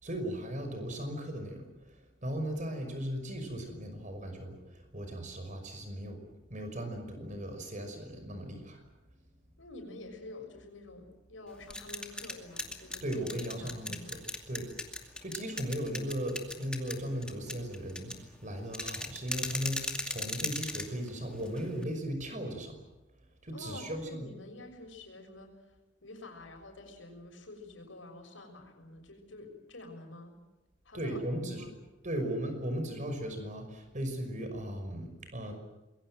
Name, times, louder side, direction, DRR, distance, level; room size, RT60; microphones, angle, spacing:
voice 1, 0.0-6.2 6.5-8.8 13.0-14.7 15.1-22.8 23.4-24.3 30.9-31.7 32.0-35.5, equal, 40° right, 7 dB, 5.8 m, -37 dB
voice 2, 9.6-14.2 23.5-25.5 26.0-30.3 30.8-31.7, left 2 dB, 85° left, 4 dB, 6.6 m, -48 dB
sound 1, 11.5-21.8, left 2 dB, 5° left, 2.4 m, -39 dB
26.5 x 22.0 x 7.8 m, 1.1 s
head